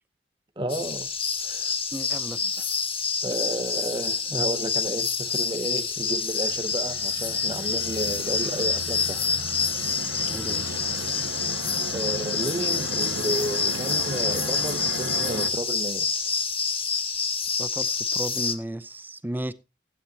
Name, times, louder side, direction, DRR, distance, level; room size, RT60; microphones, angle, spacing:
voice 1, 0.6-1.1 1.4-1.7 2.4-2.5 3.2-9.2 11.9-16.4, right 1 dB, 25° right, 1.3 m, -32 dB
sound 1, 0.7-18.5, left 5 dB, 30° left, 1.1 m, -27 dB
voice 2, 1.9-2.5 10.3-10.8 17.6-19.5, right 1 dB, 10° right, 0.6 m, -34 dB
sound 2, 5.8-15.5, right 2 dB, 85° right, 1.3 m, -36 dB
15.5 x 8.7 x 2.9 m
head